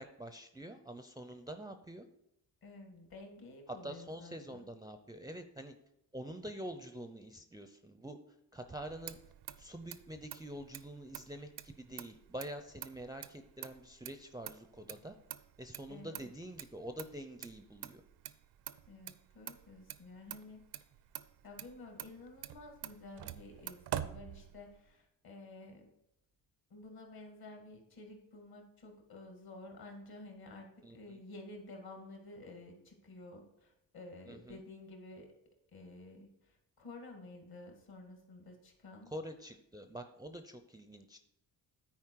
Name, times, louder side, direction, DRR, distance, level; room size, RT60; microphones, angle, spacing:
voice 1, 0.0-2.1 3.7-5.7 6.1-8.2 8.5-9.2 9.6-15.2 15.6-18.0 30.8-31.2 34.3-34.6 39.1-41.2, right 1 dB, 10° right, 7 dB, 0.5 m, -46 dB
voice 2, 2.6-4.6 15.9-16.3 18.9-20.7 21.4-25.9 26.7-35.3 35.7-39.1, left 2 dB, 55° left, 3 dB, 2.0 m, -52 dB
Motor vehicle (road), 8.7-24.9, right 12 dB, 65° right, 0.6 m, -47 dB
9.6 x 4.4 x 4.6 m, 0.81 s
cardioid pair, 70°, 43 cm